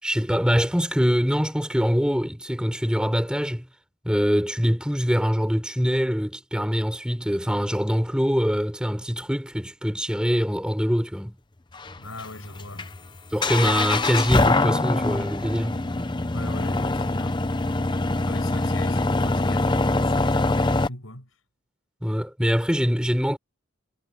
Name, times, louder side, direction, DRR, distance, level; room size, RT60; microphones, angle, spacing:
voice 1, 0.0-3.7 4.0-11.4 13.3-15.7 22.0-23.4, equal, 5° right, 4.1 m, -24 dB
sound 1, 11.7-20.9, left 2 dB, 20° left, 0.7 m, -24 dB
voice 2, 12.0-12.9 16.3-17.4 18.3-21.3, left 2 dB, 85° left, 6.8 m, -40 dB
head